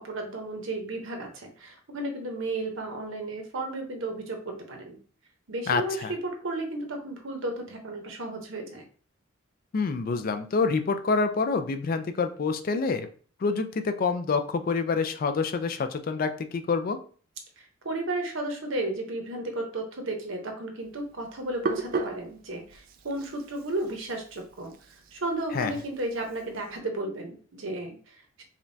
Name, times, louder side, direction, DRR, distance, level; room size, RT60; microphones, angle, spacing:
voice 1, 0.0-5.0 5.5-8.8 17.6-24.7 25.1-28.4, right 2 dB, 65° right, 3 dB, 0.8 m, -33 dB
voice 2, 5.7-6.1 9.7-13.1 13.4-17.0 25.5-25.7, left 4 dB, 45° left, 8 dB, 0.3 m, -27 dB
Hands, 20.8-26.8, right 3 dB, 45° right, 0.3 m, -37 dB
5.0 x 2.2 x 2.7 m, 0.43 s
head